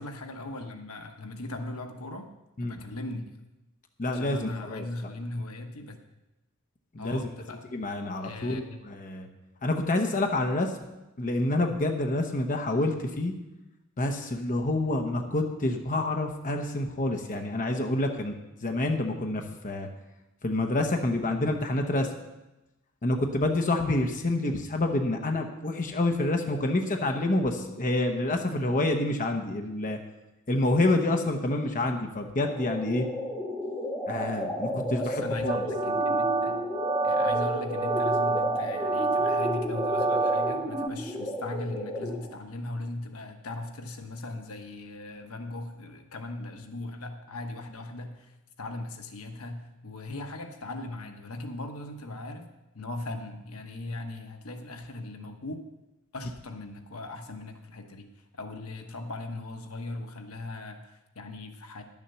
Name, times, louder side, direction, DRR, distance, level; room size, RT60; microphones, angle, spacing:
voice 1, 0.0-2.3 2.6-3.4 4.1-6.0 7.0-7.7 8.2-8.6 34.7-36.6 37.0-52.5 52.7-55.6 56.1-58.1 58.3-61.8, left 2 dB, 80° left, 5 dB, 1.2 m, -39 dB
voice 2, 4.0-4.8 6.9-7.3 7.7-9.3 9.6-10.7 11.2-13.3 14.0-18.3 18.6-19.9 20.4-22.1 23.0-30.0 30.5-33.1 34.1-35.6, left 2 dB, 40° left, 4 dB, 0.9 m, -28 dB
sound 1, 32.4-42.4, left 1 dB, 5° left, 1.7 m, -33 dB
sound 2, 35.5-40.9, right 3 dB, 20° right, 0.4 m, -28 dB
11.0 x 7.2 x 6.8 m, 0.98 s
head